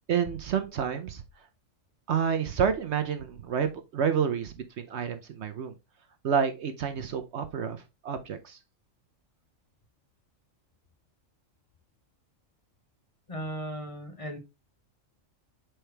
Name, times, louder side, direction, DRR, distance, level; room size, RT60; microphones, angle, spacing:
voice 1, 0.1-1.2 2.1-5.7 6.2-8.6, right 7 dB, 65° right, 0.9 m, -29 dB
voice 2, 13.3-14.4, equal, 25° left, 1.4 m, -36 dB
6.4 x 4.4 x 3.3 m
omnidirectional pair, 1.3 m